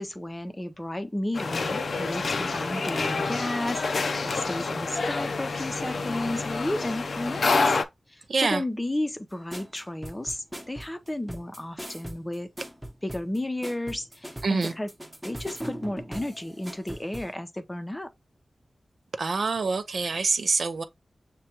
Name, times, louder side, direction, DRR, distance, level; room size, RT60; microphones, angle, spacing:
voice 1, 0.0-3.9 4.2-7.8 8.1-12.5 13.0-14.9 15.2-18.1, left 1 dB, 20° left, 0.6 m, -33 dB
sound 1, 1.3-7.8, left 3 dB, 75° left, 0.5 m, -28 dB
voice 2, 8.3-8.6 14.4-14.7 19.2-20.8, right 4 dB, 70° right, 0.5 m, -25 dB
sound 2, 9.5-17.3, right 1 dB, 10° right, 0.9 m, -40 dB
6.5 x 2.2 x 2.9 m
cardioid pair, 60°, 0 cm